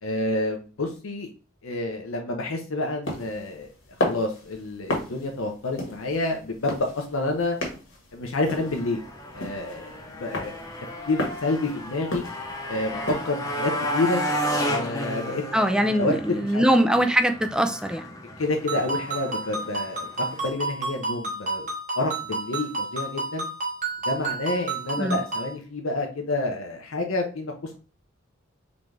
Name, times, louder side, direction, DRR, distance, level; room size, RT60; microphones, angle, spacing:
voice 1, 0.0-1.3 1.6-3.7 4.0-7.6 8.1-9.0 9.3-10.5 11.1-12.2 12.7-14.2 14.6-15.4 15.8-17.0 18.4-21.7 22.0-23.5 24.1-27.8, left 2 dB, 90° left, 2 dB, 0.7 m, -29 dB
sound 1, 3.1-13.3, left 1 dB, 70° left, 1.4 m, -34 dB
Motorcycle, 8.4-20.5, equal, 15° left, 0.8 m, -33 dB
voice 2, 15.5-18.0 25.0-25.2, equal, 5° right, 8 dB, 0.3 m, -22 dB
Ringtone, 18.7-25.5, right 3 dB, 40° right, 1.4 m, -31 dB
3.9 x 3.5 x 3.2 m, 0.36 s
head